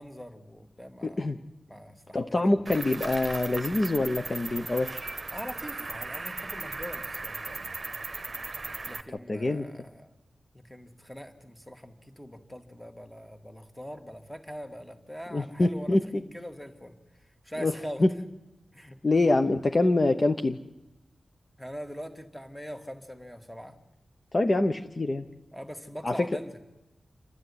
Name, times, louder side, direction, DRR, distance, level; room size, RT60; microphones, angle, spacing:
voice 1, 0.0-1.3 1.7-2.4 5.3-7.7 8.8-10.1 10.5-18.0 18.7-19.0 21.6-23.8 25.5-26.6, equal, 5° left, 6 dB, 1.9 m, -42 dB
voice 2, 1.0-1.4 2.1-5.1 9.3-9.7 15.3-16.0 17.6-18.1 19.0-20.6 24.3-25.2 26.0-26.3, left 2 dB, 30° left, 6 dB, 0.9 m, -25 dB
Cricket, 2.7-9.0, right 3 dB, 35° right, 1.2 m, -37 dB
29.0 x 12.5 x 9.8 m, 0.97 s
wide cardioid pair, 165°, 0 cm